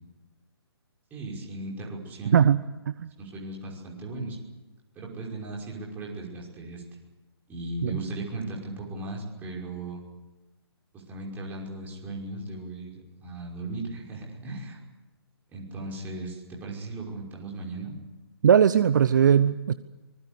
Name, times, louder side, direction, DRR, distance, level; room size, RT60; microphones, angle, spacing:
voice 1, 1.1-2.4 3.2-4.4 5.0-7.0 7.5-10.0 11.1-12.9 13.2-14.8 15.5-17.9, right 2 dB, 15° right, -2 dB, 5.6 m, -37 dB
voice 2, 2.3-3.1 7.8-7.9 18.4-19.7, right 8 dB, 45° right, 14 dB, 0.8 m, -20 dB
25.0 x 21.0 x 8.1 m, 1.1 s
figure-of-eight pair, 135°, 14 cm